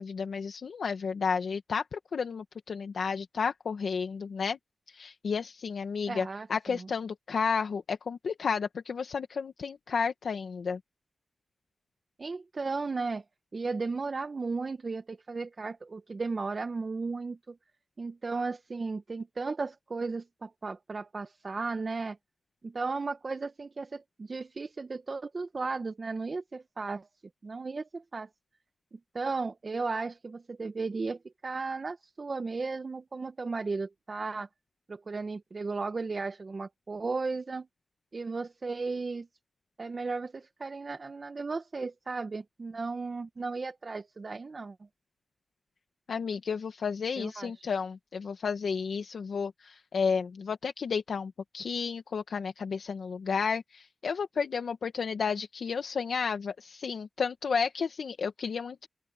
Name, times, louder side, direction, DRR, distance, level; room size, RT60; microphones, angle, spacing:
voice 1, 0.0-4.6 4.9-10.8 46.1-58.9, left 5 dB, 85° left, 1.4 m, -32 dB
voice 2, 6.1-6.9 12.2-13.2 13.5-17.6 18.0-22.2 22.6-27.1 27.4-28.3 28.9-34.5 34.9-37.7 38.1-39.3 39.8-44.8 47.2-47.7, right 4 dB, 55° right, 1.3 m, -35 dB
open air
cardioid pair, 45°, 0 cm